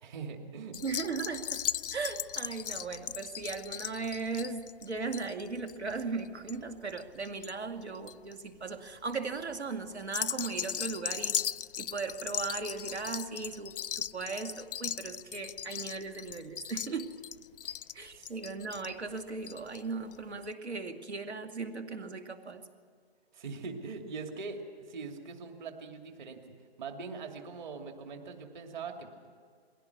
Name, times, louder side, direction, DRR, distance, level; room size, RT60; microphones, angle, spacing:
voice 1, 0.0-0.8 17.6-17.8 18.1-18.3 23.3-26.4 26.8-29.3, right 4 dB, 45° right, 4 dB, 2.6 m, -42 dB
sound 1, 0.7-7.5 7.8-8.3 8.9-9.2 10.0-19.8 20.1-20.2 20.4-20.5, left 9 dB, 60° left, 0.5 m, -37 dB
voice 2, 0.8-11.4 11.8-17.1 17.9-22.6, right 4 dB, 90° right, 6 dB, 2.4 m, -37 dB
21.0 x 17.0 x 8.3 m, 2.1 s
hypercardioid pair, 155°, 32 cm